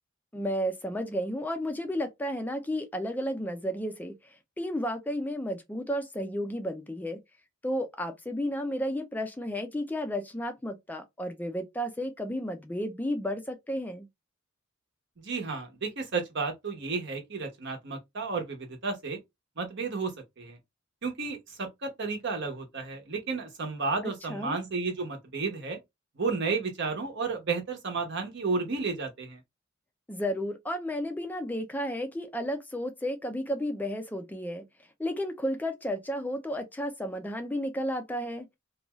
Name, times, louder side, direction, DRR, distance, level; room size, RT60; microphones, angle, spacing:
voice 1, 0.3-7.2 7.6-14.1 24.3-24.6 30.1-34.7 35.0-38.5, equal, 10° left, 0.4 m, -32 dB
voice 2, 15.2-19.2 19.6-20.6 21.0-25.8 26.2-29.4, right 4 dB, 60° right, 0.9 m, -32 dB
2.6 x 2.2 x 2.9 m
head